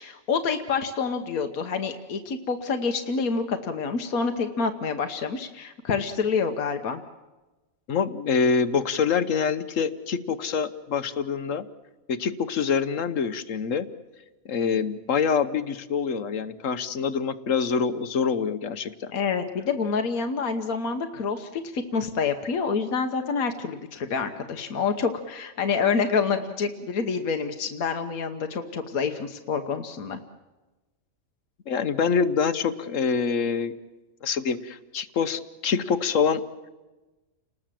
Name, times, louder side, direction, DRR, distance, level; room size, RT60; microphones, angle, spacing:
voice 1, 0.0-7.0 19.1-30.2, left 5 dB, 85° left, 6 dB, 1.6 m, -27 dB
voice 2, 7.9-11.7 12.1-13.9 14.4-19.1 31.7-33.7 34.2-36.4, left 6 dB, 65° left, 12 dB, 1.3 m, -25 dB
30.0 x 19.5 x 7.6 m, 1.2 s
omnidirectional pair, 1.4 m